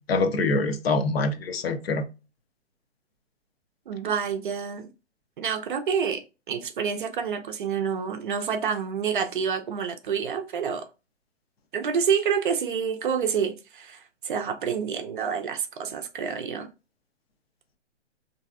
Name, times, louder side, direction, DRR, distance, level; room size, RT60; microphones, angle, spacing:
voice 1, 0.1-2.0, left 3 dB, 55° left, 0.6 m, -25 dB
voice 2, 3.9-4.9 5.4-10.9 11.7-16.7, right 7 dB, 45° right, 0.5 m, -28 dB
3.1 x 2.6 x 2.4 m
hypercardioid pair, 135°, 36 cm